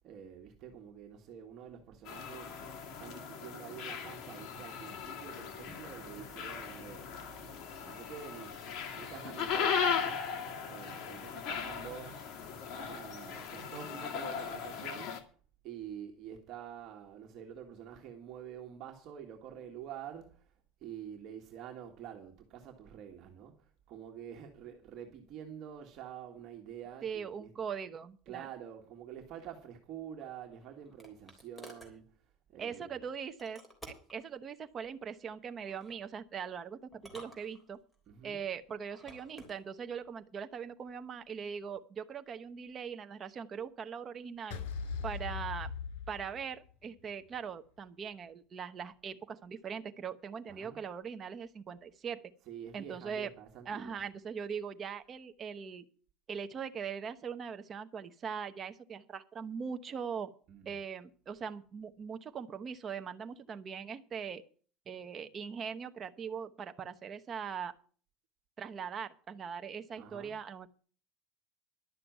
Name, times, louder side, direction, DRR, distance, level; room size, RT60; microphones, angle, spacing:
voice 1, 0.0-2.7 3.0-7.1 7.5-12.3 12.7-15.3 15.6-20.5 20.8-27.5 28.3-33.0 38.1-38.4 50.5-50.8 52.5-54.0 60.5-60.8 70.0-70.3, right 9 dB, 45° right, 1.9 m, -48 dB
sound 1, 2.0-15.2, left 6 dB, 50° left, 2.1 m, -38 dB
voice 2, 27.0-28.5 32.6-37.8 38.2-44.6 45.0-45.7 46.1-52.3 52.7-53.3 53.7-55.8 56.3-60.3 60.7-64.4 64.9-67.7 68.6-70.7, right 7 dB, 30° right, 0.9 m, -41 dB
sound 2, 30.2-32.0 33.4-34.2 35.6-36.0 36.9-38.0 38.8-39.6, equal, 5° left, 3.4 m, -53 dB
sound 3, 44.5-46.8, left 5 dB, 85° left, 2.6 m, -39 dB
12.0 x 6.7 x 9.2 m
cardioid pair, 145°, 0 cm